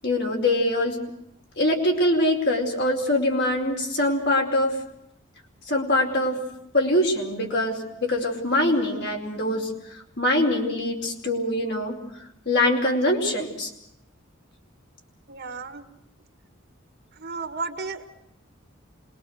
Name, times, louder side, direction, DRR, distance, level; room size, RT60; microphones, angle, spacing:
voice 1, 0.0-1.0 1.6-4.8 5.7-6.4 6.7-9.7 10.2-12.0 12.4-13.7, left 1 dB, 55° left, 1 dB, 4.9 m, -23 dB
voice 2, 15.3-15.8 17.2-18.1, right 4 dB, 50° right, 7 dB, 1.9 m, -33 dB
26.5 x 22.0 x 6.5 m, 0.79 s
head